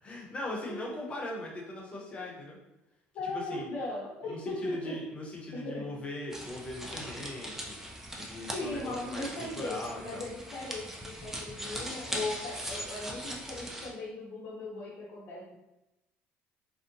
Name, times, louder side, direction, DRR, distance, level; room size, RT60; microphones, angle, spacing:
voice 1, 0.0-2.6 3.2-3.7 4.3-7.8 8.2-10.2, left 1 dB, 25° left, -2 dB, 0.7 m, -40 dB
voice 2, 0.6-1.0 3.1-5.0 5.5-5.9 8.5-15.5, left 2 dB, 60° left, -6 dB, 0.8 m, -38 dB
sound 1, 6.3-13.9, equal, 10° right, 0.4 m, -40 dB
2.6 x 2.1 x 2.6 m, 0.94 s
cardioid pair, 120°, 5 cm